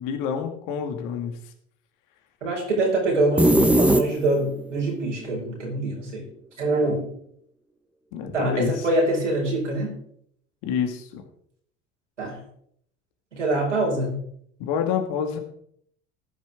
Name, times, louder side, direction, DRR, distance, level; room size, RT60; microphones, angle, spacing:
voice 1, 0.0-1.4 8.1-8.9 10.6-11.2 14.6-15.4, left 7 dB, 60° left, 5 dB, 2.1 m, -28 dB
voice 2, 2.4-6.3 6.6-7.1 8.3-9.9 12.2-12.4 13.3-14.2, right 2 dB, 90° right, -3 dB, 5.1 m, -24 dB
sound 1, 3.4-4.6, right 1 dB, 5° right, 1.2 m, -18 dB
14.5 x 11.0 x 3.5 m, 0.67 s
figure-of-eight pair, 65°, 35 cm